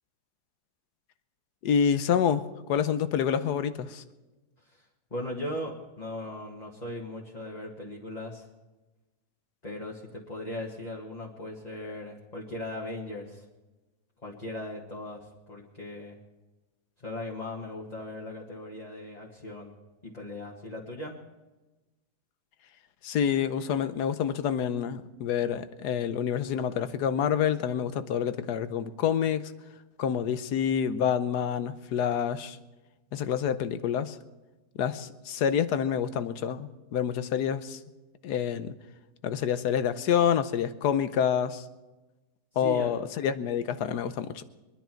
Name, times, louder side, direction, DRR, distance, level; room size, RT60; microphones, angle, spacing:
voice 1, 1.6-4.0 23.0-29.5 30.0-32.6 33.1-34.2 34.7-37.8 38.2-38.8 39.2-41.6 42.6-44.4, left 8 dB, 85° left, 12 dB, 1.4 m, -27 dB
voice 2, 5.1-8.5 9.6-13.5 14.2-16.2 17.0-19.7 20.0-21.2 42.5-42.9, left 1 dB, 25° left, -3 dB, 1.8 m, -38 dB
23.5 x 10.5 x 4.5 m, 1.1 s
omnidirectional pair, 1.7 m